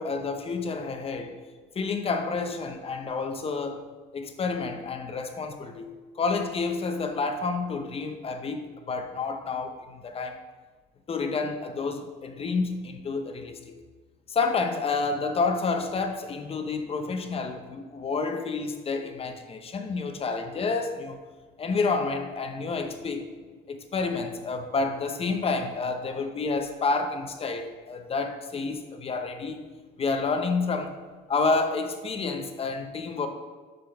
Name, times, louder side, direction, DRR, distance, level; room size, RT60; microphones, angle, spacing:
voice 1, 0.0-1.4 1.7-3.8 4.1-10.4 11.1-13.8 14.3-21.2 21.6-23.3 23.7-29.6 30.0-31.0 31.3-33.3, left 4 dB, 35° left, 0.8 m, -29 dB
6.0 x 5.2 x 5.7 m
cardioid pair, 110°, 17 cm